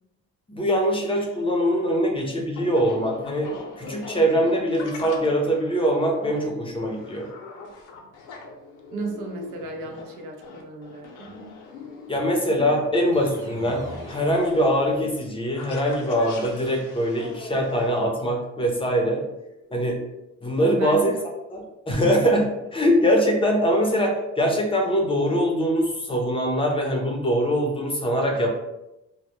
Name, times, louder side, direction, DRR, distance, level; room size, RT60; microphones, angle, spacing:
voice 1, 0.5-3.5 3.8-7.3 12.1-19.2 19.7-20.0 20.4-21.1 21.5-28.5, equal, 20° left, 0 dB, 0.6 m, -23 dB
sound 1, 1.4-18.0, left 3 dB, 85° left, 0.6 m, -41 dB
voice 2, 8.9-11.3 20.6-21.2, right 3 dB, 85° right, 2 dB, 0.5 m, -34 dB
sound 2, 13.1-15.4, equal, 10° right, 0.8 m, -43 dB
2.1 x 2.1 x 3.0 m, 0.90 s
cardioid pair, 90°, 30 cm